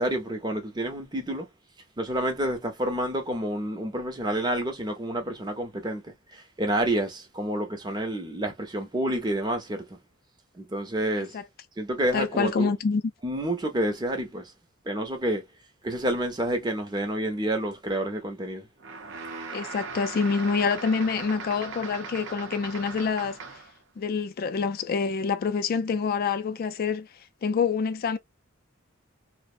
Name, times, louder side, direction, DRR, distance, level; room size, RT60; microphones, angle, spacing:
voice 1, 0.0-1.5 2.0-10.0 10.5-11.4 11.8-12.7 13.2-14.5 14.9-15.4 15.8-18.6, right 1 dB, 20° right, 0.6 m, -29 dB
voice 2, 12.1-13.0 19.5-23.4 24.0-27.1 27.4-28.2, left 5 dB, 45° left, 0.3 m, -26 dB
sound 1, 18.8-23.8, right 4 dB, 60° right, 0.6 m, -39 dB
2.5 x 2.1 x 2.4 m
head